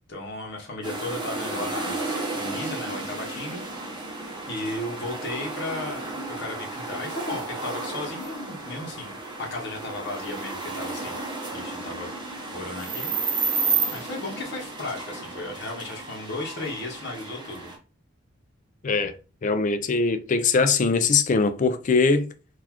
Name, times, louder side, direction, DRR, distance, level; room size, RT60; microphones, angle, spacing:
voice 1, 0.1-2.0 2.4-3.6 4.5-6.0 6.4-11.2 11.5-12.1 12.5-13.1 13.9-17.7, left 2 dB, 60° left, 0.9 m, -35 dB
sound 1, 0.8-17.8, right 3 dB, 25° right, 0.8 m, -32 dB
voice 2, 18.8-19.2 19.4-22.3, left 4 dB, 40° left, 0.4 m, -22 dB
3.9 x 2.4 x 2.9 m
head